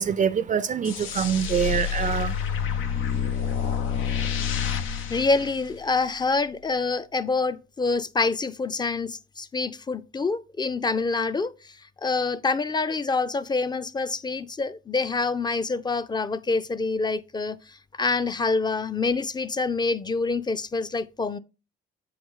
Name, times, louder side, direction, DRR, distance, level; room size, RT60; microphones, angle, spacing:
voice 1, 0.0-3.7, right 7 dB, 40° right, 0.4 m, -27 dB
sound 1, 0.8-6.2, left 8 dB, 90° left, 0.7 m, -28 dB
voice 2, 4.8-11.7 12.0-17.6 18.0-21.4, left 3 dB, 20° left, 0.4 m, -26 dB
7.7 x 4.7 x 3.6 m
cardioid pair, 90°, 20 cm